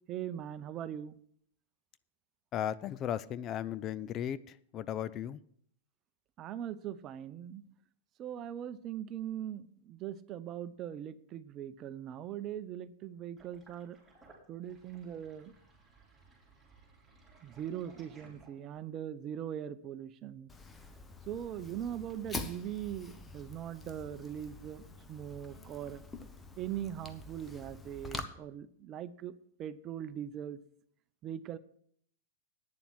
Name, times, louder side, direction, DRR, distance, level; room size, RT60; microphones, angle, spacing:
voice 1, 0.1-1.2 6.4-7.6 8.2-14.0 14.5-15.5 17.4-20.5 21.3-26.0 26.6-30.6 31.2-31.6, right 10 dB, 35° right, 14 dB, 0.7 m, -41 dB
voice 2, 2.5-5.4, left 10 dB, 35° left, 16 dB, 0.4 m, -36 dB
Sink (filling or washing), 13.4-18.9, right 3 dB, 5° right, 4.1 m, -59 dB
Fire, 20.5-28.2, left 3 dB, 15° left, 1.0 m, -46 dB
9.6 x 7.0 x 7.6 m, 0.64 s
hypercardioid pair, 105°, 0 cm